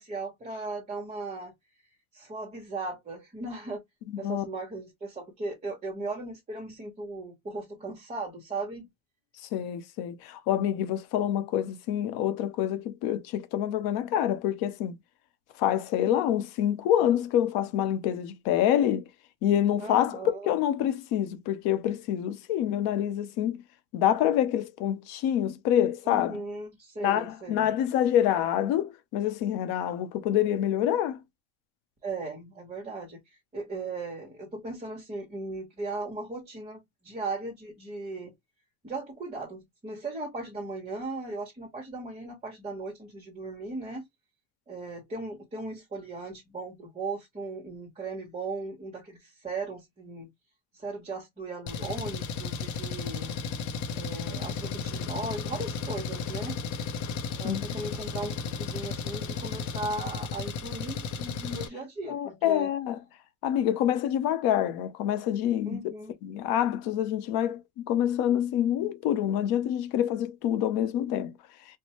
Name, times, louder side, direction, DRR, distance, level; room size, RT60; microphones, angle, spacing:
voice 1, 0.0-1.5 2.1-3.8 4.2-8.9 19.8-20.5 26.0-27.7 32.0-38.3 38.8-44.1 44.7-50.3 50.7-53.4 53.9-56.6 57.4-62.7 65.7-66.1, right 3 dB, 15° right, 1.1 m, -37 dB
voice 2, 4.1-4.4 9.5-14.9 15.6-19.0 19.4-20.2 20.4-23.6 23.9-26.4 27.0-31.2 57.4-57.6 62.1-63.0 63.4-65.8 66.2-71.3, left 10 dB, 80° left, 0.9 m, -26 dB
Engine, 51.7-61.7, left 5 dB, 50° left, 0.7 m, -34 dB
4.4 x 2.2 x 2.9 m
cardioid pair, 160°, 38 cm